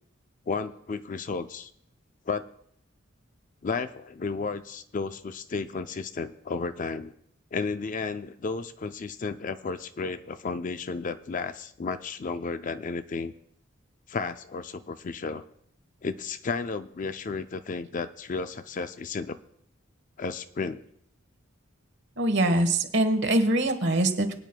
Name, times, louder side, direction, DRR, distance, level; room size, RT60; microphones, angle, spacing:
voice 1, 0.5-1.7 2.3-2.5 3.6-7.1 7.5-13.3 14.1-15.4 16.0-19.4 20.2-20.8, left 4 dB, 40° left, 11 dB, 0.4 m, -33 dB
voice 2, 22.2-24.3, right 1 dB, 60° right, 7 dB, 1.2 m, -23 dB
24.5 x 9.1 x 2.2 m, 0.69 s
head